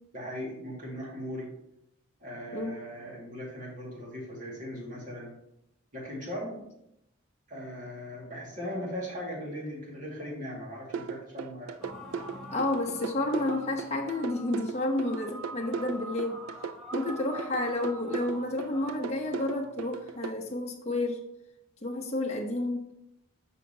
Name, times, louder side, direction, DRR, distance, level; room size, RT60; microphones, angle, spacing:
voice 1, 0.1-1.5 2.2-5.3 5.9-6.6 7.5-11.8, equal, 35° right, -4 dB, 2.1 m, -38 dB
sound 1, 10.9-20.3, right 6 dB, 70° right, 0.3 m, -37 dB
sound 2, 11.8-20.5, equal, ahead, 1.3 m, -45 dB
voice 2, 12.5-16.4 16.9-21.2 21.8-22.9, left 2 dB, 30° left, 1 dB, 0.9 m, -30 dB
7.1 x 5.5 x 2.8 m, 0.80 s
head